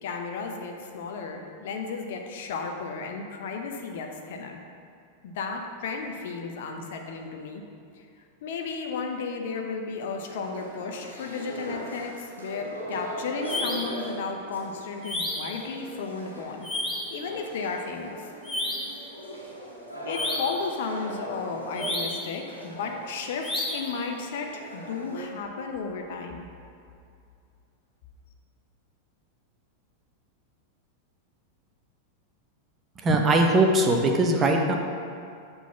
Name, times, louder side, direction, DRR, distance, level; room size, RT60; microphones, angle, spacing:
voice 1, 0.0-4.6 5.2-7.6 8.0-8.1 8.4-16.7 17.1-18.2 20.0-26.5, left 4 dB, 55° left, 3 dB, 0.8 m, -34 dB
sound 1, 10.3-25.3, right 1 dB, 85° right, 1.5 m, -40 dB
sound 2, 13.4-14.0 15.0-15.6 16.6-17.2 18.4-19.0 20.1-20.7 21.8-22.3 23.4-24.0, left 1 dB, 15° left, 1.0 m, -31 dB
voice 2, 33.0-34.7, right 2 dB, 20° right, 2 dB, 0.9 m, -20 dB
8.2 x 4.1 x 5.8 m, 2.5 s
figure-of-eight pair, 90°, 0 cm